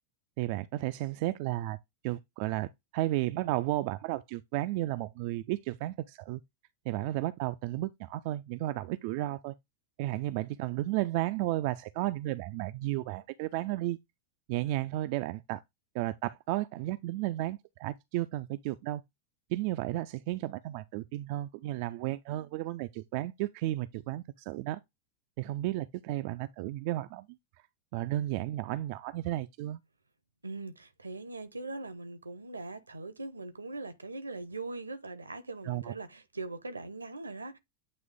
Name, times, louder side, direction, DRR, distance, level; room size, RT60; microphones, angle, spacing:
voice 1, 0.4-1.8 2.0-6.4 6.9-9.5 10.0-14.0 14.5-15.6 15.9-19.0 19.5-24.8 25.4-27.3 27.9-29.8 35.6-35.9, right 16 dB, 45° right, 0.4 m, -33 dB
voice 2, 30.4-37.6, right 3 dB, 80° right, 0.9 m, -41 dB
8.7 x 3.1 x 3.6 m
figure-of-eight pair, 90°, 0 cm